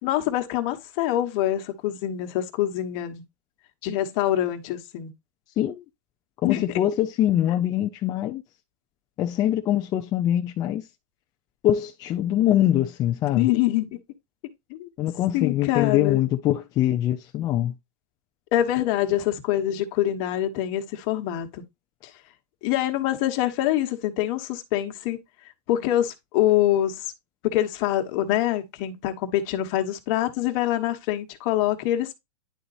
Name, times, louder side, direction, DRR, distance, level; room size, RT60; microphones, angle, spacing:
voice 1, 0.0-3.2 3.8-5.1 6.4-6.6 13.3-14.0 14.7-14.9 15.3-16.2 18.5-21.6 22.6-25.2 25.7-27.1 27.4-32.1, left 13 dB, 40° left, 1.1 m, -25 dB
voice 2, 6.4-8.4 9.2-10.8 11.6-13.5 15.0-17.7, left 12 dB, 20° left, 0.4 m, -23 dB
10.5 x 4.0 x 2.5 m
supercardioid pair, 155°, 20 cm